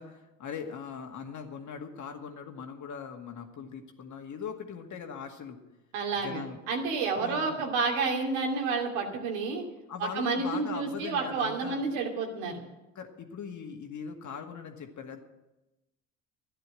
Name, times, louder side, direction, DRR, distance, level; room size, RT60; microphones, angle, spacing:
voice 1, 0.0-5.6 6.1-6.6 7.1-7.7 9.9-11.9 13.0-15.2, left 6 dB, 50° left, 4 dB, 2.1 m, -40 dB
voice 2, 5.9-9.6 10.0-12.6, right 4 dB, 80° right, 1 dB, 2.7 m, -30 dB
13.0 x 10.0 x 7.7 m, 1.0 s
hypercardioid pair, 60°, 37 cm